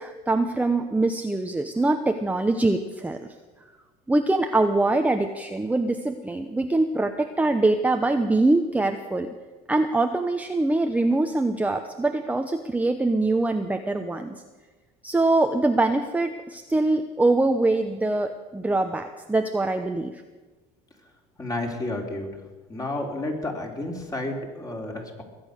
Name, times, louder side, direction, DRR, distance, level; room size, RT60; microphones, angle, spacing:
voice 1, 0.0-3.2 4.1-9.3 9.7-14.4 15.0-20.2, right 2 dB, 10° right, 5 dB, 0.9 m, -23 dB
voice 2, 21.4-22.4 22.7-25.2, left 2 dB, 20° left, 1 dB, 3.6 m, -31 dB
21.0 x 8.8 x 6.6 m, 1.2 s
supercardioid pair, 95°, 18 cm